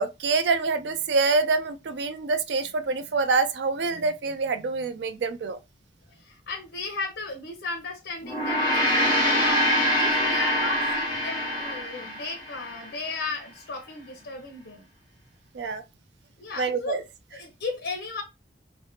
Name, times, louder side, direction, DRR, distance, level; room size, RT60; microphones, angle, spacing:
voice 1, 0.0-5.6 15.5-15.8 16.6-17.0, right 4 dB, 85° right, 0.4 m, -26 dB
voice 2, 6.2-9.7 10.0-14.9 16.4-17.0 17.3-18.2, left 3 dB, 85° left, 0.7 m, -35 dB
Gong, 8.2-12.8, equal, 25° left, 0.9 m, -24 dB
3.3 x 2.1 x 2.7 m
head